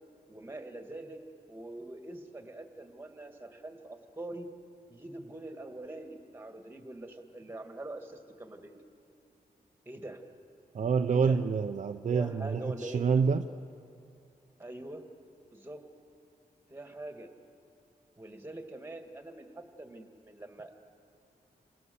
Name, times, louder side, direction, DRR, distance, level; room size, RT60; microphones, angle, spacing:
voice 1, 0.3-1.2 1.5-4.6 4.9-8.8 9.9-10.2 11.1-11.4 12.1-13.2 14.6-15.1 15.5-15.8 16.7-17.3 18.2-20.8, right 1 dB, 15° right, 5 dB, 1.9 m, -44 dB
voice 2, 10.7-13.5, right 5 dB, 50° right, 6 dB, 0.6 m, -27 dB
29.5 x 27.0 x 7.0 m, 2.8 s
wide cardioid pair, 160°, 15 cm